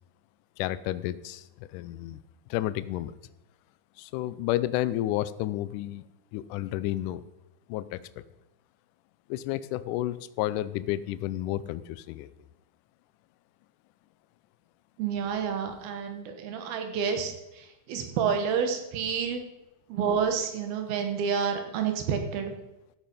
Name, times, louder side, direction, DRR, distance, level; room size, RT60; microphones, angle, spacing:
voice 1, 0.6-2.2 2.5-3.1 4.0-7.3 7.7-8.2 9.3-12.3, left 14 dB, 85° left, 15 dB, 1.8 m, -31 dB
voice 2, 15.0-19.4 19.9-22.5, right 6 dB, 85° right, 6 dB, 3.2 m, -29 dB
14.0 x 8.5 x 5.4 m, 0.94 s
omnidirectional pair, 4.3 m